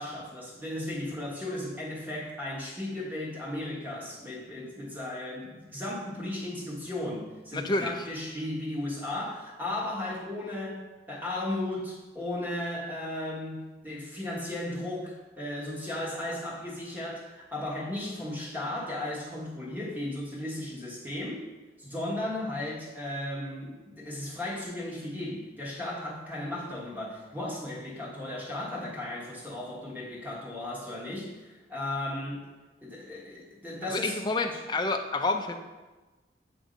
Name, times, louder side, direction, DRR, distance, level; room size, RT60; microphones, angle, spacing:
voice 1, 0.0-21.4 21.8-32.5 32.8-34.2, left 1 dB, 10° right, -4 dB, 1.2 m, -35 dB
voice 2, 7.5-7.9 33.9-35.6, left 2 dB, 25° left, 5 dB, 0.4 m, -29 dB
7.5 x 2.6 x 5.0 m, 1.2 s
head